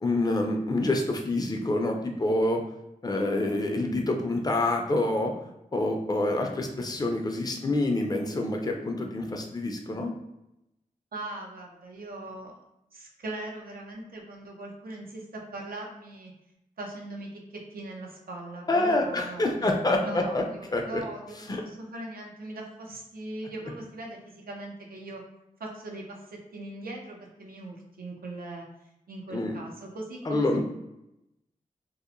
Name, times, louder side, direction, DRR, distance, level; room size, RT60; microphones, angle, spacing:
voice 1, 0.0-2.6 3.0-5.3 5.7-10.1 18.7-20.4 20.7-21.0 21.5-21.6 29.3-29.5 30.3-30.6, left 2 dB, 25° left, 3 dB, 0.4 m, -27 dB
voice 2, 11.1-12.6 12.9-16.3 16.8-19.8 20.0-25.2 25.6-28.7 29.1-30.6, right 2 dB, 85° right, 0 dB, 0.5 m, -40 dB
2.8 x 2.0 x 2.4 m, 0.87 s
wide cardioid pair, 60°, 15 cm